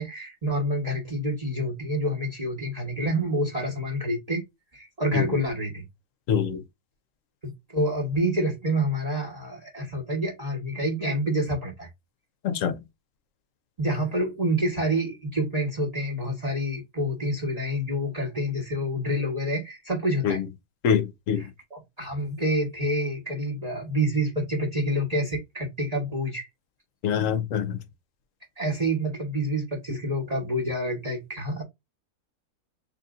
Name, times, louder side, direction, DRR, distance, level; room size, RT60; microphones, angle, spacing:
voice 1, 0.0-4.4 4.7-5.9 7.4-11.9 13.8-20.4 21.4-26.5 28.6-31.6, equal, 25° right, 1.1 m, -28 dB
voice 2, 6.3-6.6 12.4-12.8 20.2-20.4 20.8-21.4 27.0-27.8, left 7 dB, 65° left, 0.9 m, -25 dB
4.1 x 3.3 x 2.4 m
omnidirectional pair, 1.7 m